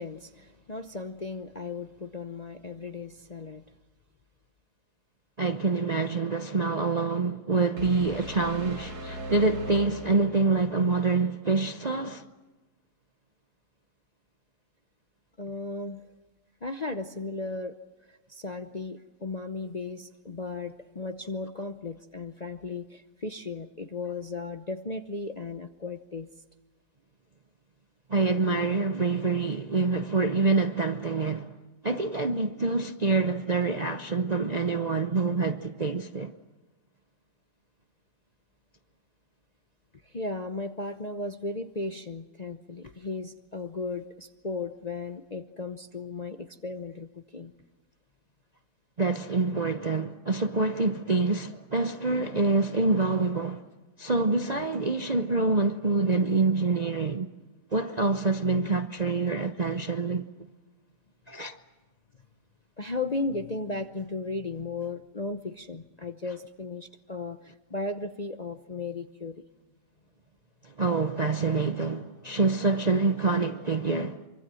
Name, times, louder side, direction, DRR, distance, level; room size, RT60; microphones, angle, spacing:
voice 1, 0.0-3.6 5.9-6.0 15.4-16.1 16.6-17.7 18.1-26.3 40.0-47.5 54.3-54.7 62.8-69.4, left 3 dB, 35° left, 0.7 m, -36 dB
voice 2, 5.4-12.3 28.1-31.6 31.8-36.3 49.0-53.6 54.0-57.3 57.7-60.2 61.3-61.6 70.6-74.2, right 3 dB, 35° right, 0.6 m, -26 dB
sound 1, 7.8-10.7, right 1 dB, 70° right, 2.8 m, -39 dB
25.5 x 24.5 x 7.7 m
omnidirectional pair, 1.8 m